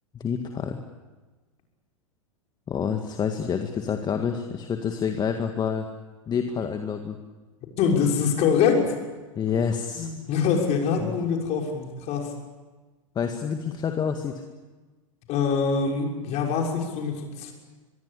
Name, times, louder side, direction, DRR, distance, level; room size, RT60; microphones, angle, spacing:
voice 1, 0.1-0.8 2.7-5.9 6.3-7.2 9.4-10.1 11.0-11.1 13.2-14.4, left 7 dB, 25° left, 6 dB, 1.9 m, -28 dB
voice 2, 7.8-8.9 9.9-12.3 15.3-17.5, left 6 dB, 40° left, 1 dB, 6.5 m, -24 dB
24.5 x 22.5 x 8.5 m, 1.3 s
figure-of-eight pair, 95°, 17 cm